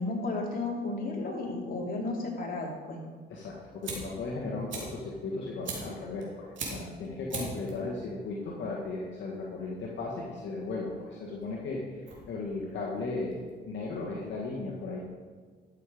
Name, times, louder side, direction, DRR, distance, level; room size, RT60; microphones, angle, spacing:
voice 1, 0.0-3.0, left 2 dB, 45° left, -2 dB, 3.0 m, -33 dB
voice 2, 3.3-13.4 13.6-15.0, left 3 dB, 70° left, -3 dB, 1.8 m, -36 dB
Fire, 3.5-13.9, right 3 dB, 75° right, 2.6 m, -43 dB
12.5 x 6.7 x 5.2 m, 1.5 s
cardioid pair, 90°, 20 cm